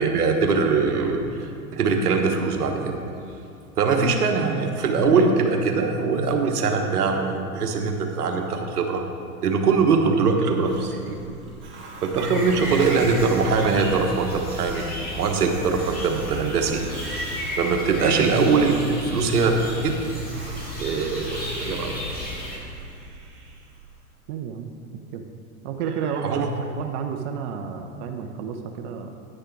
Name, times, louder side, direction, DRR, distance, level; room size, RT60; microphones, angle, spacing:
voice 1, 0.0-3.0 3.8-9.0 9.4-11.2 12.0-16.8 17.6-19.9 20.8-22.0 26.2-26.5, right 4 dB, 80° right, 3 dB, 1.2 m, -22 dB
Hiss, 10.6-24.1, right 4 dB, 25° right, 2.0 m, -42 dB
sound 1, 12.2-22.6, left 1 dB, 20° left, 2.1 m, -34 dB
voice 2, 24.3-24.7 25.1-25.3 25.6-29.1, right 7 dB, 50° right, 4 dB, 0.8 m, -31 dB
9.9 x 6.6 x 4.6 m, 2.6 s
hypercardioid pair, 110°, 45 cm